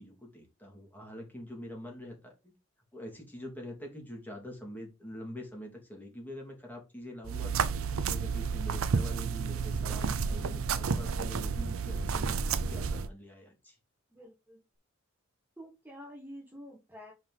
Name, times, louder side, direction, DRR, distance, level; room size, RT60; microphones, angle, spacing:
voice 1, 0.0-2.5 2.9-7.6 8.0-13.8, equal, 10° left, 0 dB, 2.6 m, -45 dB
sound 1, 7.2-13.1, right 5 dB, 80° right, 0.6 m, -31 dB
voice 2, 14.1-14.6 15.6-17.1, equal, 10° right, -3 dB, 1.4 m, -48 dB
5.4 x 4.9 x 4.0 m, 0.25 s
head